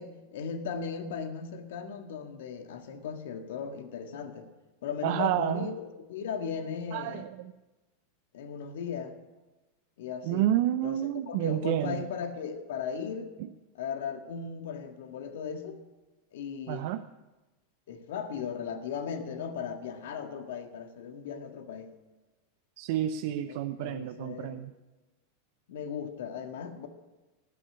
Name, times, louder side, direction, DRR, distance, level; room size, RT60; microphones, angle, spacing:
voice 1, 0.0-4.5 4.8-7.2 8.3-9.2 10.0-10.4 10.8-11.0 11.3-13.3 13.8-15.8 16.3-16.9 17.9-21.9 23.5-24.6 25.7-26.9, left 6 dB, 75° left, 6 dB, 1.7 m, -37 dB
voice 2, 5.0-5.7 6.9-7.5 10.2-12.0 16.7-17.0 22.8-24.7, right 12 dB, 60° right, 10 dB, 0.6 m, -29 dB
18.5 x 6.2 x 9.9 m, 1.1 s
hypercardioid pair, 110°, 0 cm